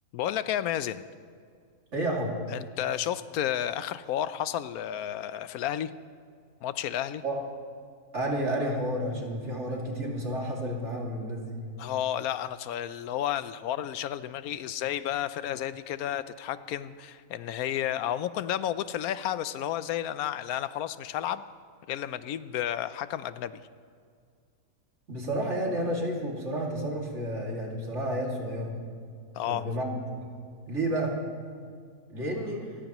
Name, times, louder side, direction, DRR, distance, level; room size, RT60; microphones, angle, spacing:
voice 1, 0.1-1.1 2.5-5.9 6.6-7.2 11.8-21.4 21.9-23.7 29.3-29.6, left 11 dB, 85° left, 14 dB, 1.1 m, -32 dB
voice 2, 1.9-2.4 7.2-7.4 8.1-11.6 25.1-28.7 29.4-30.0 30.7-31.2 32.1-32.7, right 1 dB, 55° right, -1 dB, 2.7 m, -31 dB
27.5 x 15.0 x 3.0 m, 2.2 s
omnidirectional pair, 1.5 m